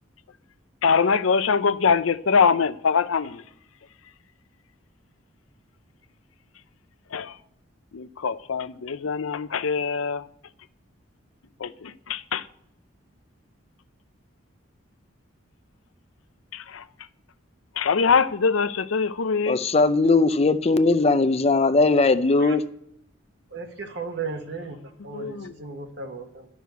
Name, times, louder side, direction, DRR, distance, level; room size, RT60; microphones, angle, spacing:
voice 1, 0.8-3.4 7.1-7.4 7.9-10.3 11.6-12.5 16.5-16.8 17.8-19.6 25.1-25.5, left 5 dB, 80° left, 0.6 m, -23 dB
voice 2, 19.5-22.6, left 3 dB, 30° left, 0.5 m, -19 dB
voice 3, 23.5-26.5, right 4 dB, 55° right, 1.4 m, -35 dB
12.0 x 6.2 x 8.2 m
head